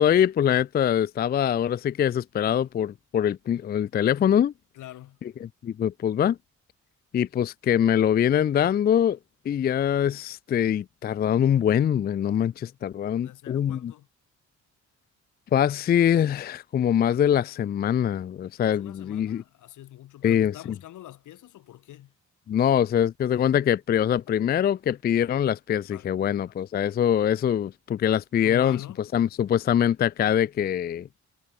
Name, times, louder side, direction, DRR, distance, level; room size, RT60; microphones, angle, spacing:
voice 1, 0.0-4.5 5.4-6.4 7.1-9.2 9.5-13.9 15.5-19.4 20.2-20.5 22.5-28.8 29.1-31.1, left 9 dB, 35° left, 0.4 m, -23 dB
voice 2, 4.7-5.2 13.2-14.1 18.6-22.1 25.9-26.1 28.4-29.0, left 13 dB, 80° left, 3.0 m, -44 dB
cardioid pair, 90°, 30 cm